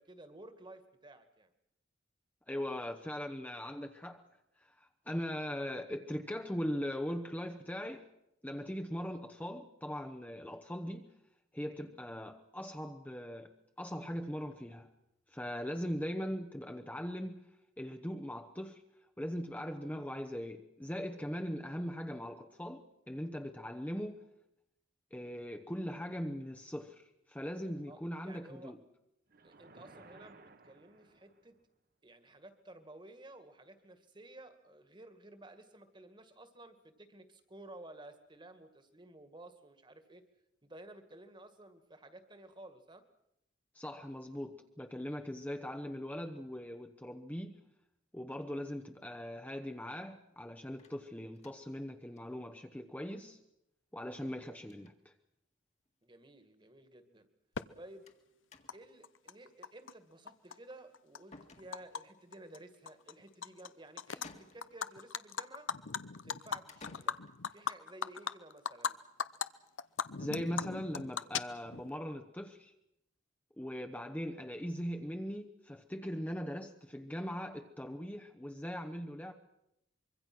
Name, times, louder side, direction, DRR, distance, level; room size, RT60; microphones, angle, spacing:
voice 1, 0.0-1.5 27.9-28.7 29.4-31.5 32.0-40.2 40.6-43.0 56.0-57.3 57.8-58.1 58.7-65.7 66.2-67.2 67.5-69.0, right 1 dB, 25° right, 9 dB, 2.0 m, -54 dB
voice 2, 2.5-4.2 4.6-8.1 8.4-11.1 11.5-13.5 13.8-14.9 15.3-17.4 17.8-24.2 25.1-28.8 43.7-47.6 48.1-53.4 53.9-55.1 70.2-72.7 73.6-79.3, equal, 10° left, 5 dB, 0.9 m, -40 dB
sound 1, 29.3-31.6, right 3 dB, 50° right, 1.3 m, -58 dB
sound 2, 50.8-51.8 52.2-52.3 52.5-52.6 52.9-53.0 54.1-54.4 54.6-55.0 55.8-55.9 56.2-56.3 58.1-58.2 58.5-59.0 60.8-60.9 61.3-62.1 64.1-65.0 66.7-67.6, left 3 dB, 35° left, 1.8 m, -57 dB
Animal, 57.6-57.7 58.7-58.8 59.0-59.9 60.3-62.0 62.3-62.6 62.9-63.7 64.0-64.3 64.6-68.9 69.2-69.5 69.8-71.9, left 6 dB, 80° left, 0.8 m, -38 dB
25.0 x 23.5 x 6.1 m, 0.84 s
head